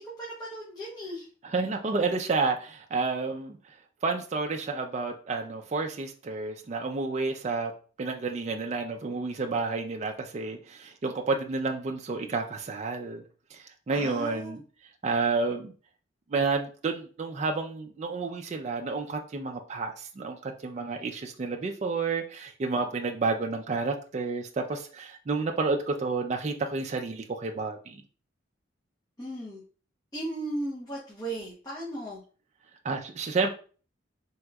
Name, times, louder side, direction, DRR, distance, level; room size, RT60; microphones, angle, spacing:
voice 1, 0.0-1.3 13.9-14.6 29.2-29.6 30.1-32.2, right 1 dB, 20° left, -6 dB, 0.8 m, -36 dB
voice 2, 1.4-3.7 4.0-7.7 8.0-13.2 13.5-14.6 15.0-15.7 16.3-28.0 32.8-33.5, right 4 dB, 35° right, 4 dB, 0.3 m, -30 dB
3.4 x 2.9 x 2.3 m, 0.39 s
head